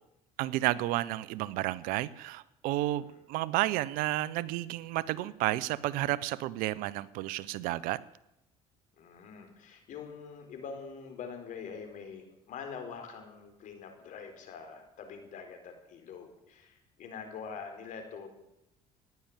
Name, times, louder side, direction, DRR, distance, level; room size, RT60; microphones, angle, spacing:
voice 1, 0.4-8.0, right 16 dB, 75° right, 20 dB, 0.7 m, -31 dB
voice 2, 9.0-18.3, left 6 dB, 60° left, 5 dB, 4.3 m, -44 dB
15.5 x 10.5 x 8.9 m, 0.86 s
supercardioid pair, 75°, 15 cm